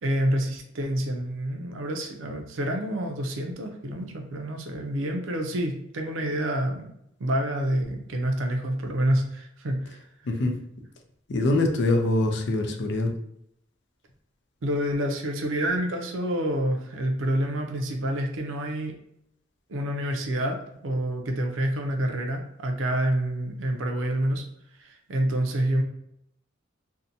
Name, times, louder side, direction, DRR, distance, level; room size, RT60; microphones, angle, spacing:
voice 1, 0.0-6.9 7.2-10.0 14.6-19.0 19.7-24.4 24.8-25.8, right 1 dB, 90° right, 3 dB, 0.5 m, -28 dB
voice 2, 10.2-10.6 11.3-13.1, left 2 dB, 65° left, 3 dB, 0.4 m, -24 dB
2.6 x 2.1 x 2.6 m, 0.76 s
head